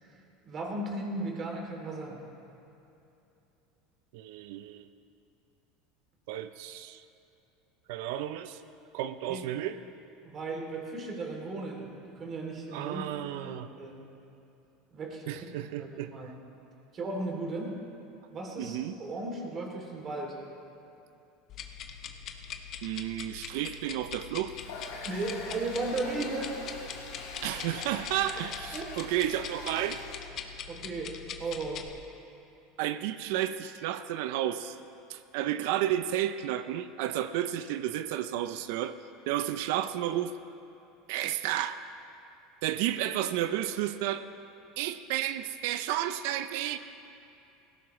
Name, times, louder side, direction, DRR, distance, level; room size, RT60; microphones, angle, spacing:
voice 1, 0.0-2.2 9.3-9.4 10.2-14.0 14.9-16.4 16.9-17.8 18.3-20.4 25.0-26.5 27.1-27.3 28.7-28.9 30.7-31.8, right 2 dB, 35° right, 0 dB, 2.8 m, -36 dB
voice 2, 4.1-4.9 6.3-7.0 7.9-8.6 8.9-9.8 12.7-13.7 15.3-16.3 18.6-18.9 22.8-24.5 27.4-30.0 32.8-34.8 35.1-39.0 39.3-40.3 41.1-41.8 42.6-44.3 44.8-46.8, right 12 dB, 75° right, 11 dB, 0.5 m, -32 dB
sound 1, 21.5-31.9, left 7 dB, 45° left, 1.0 m, -42 dB
Water tap faucet, 24.5-30.3, left 3 dB, 80° left, 4.0 m, -43 dB
18.0 x 16.0 x 3.2 m, 2.8 s
supercardioid pair, 120°, 0 cm